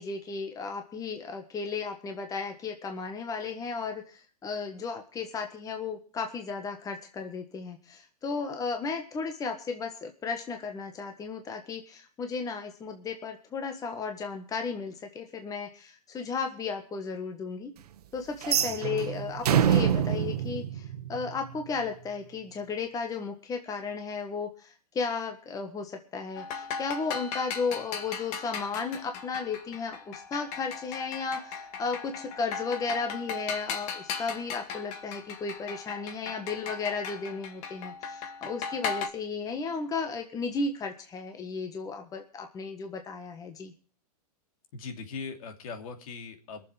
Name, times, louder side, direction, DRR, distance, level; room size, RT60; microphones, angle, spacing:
voice 1, 0.0-17.7 18.1-43.7, left 4 dB, 15° left, 5 dB, 1.6 m, -34 dB
sound 1, 18.4-21.5, right 9 dB, 80° right, 1.2 m, -26 dB
sound 2, 26.4-39.1, left 6 dB, 35° left, 2.1 m, -38 dB
voice 2, 44.7-46.7, left 5 dB, 60° left, 5 dB, 2.9 m, -40 dB
21.5 x 7.4 x 5.8 m, 0.39 s
hypercardioid pair, 140°, 20 cm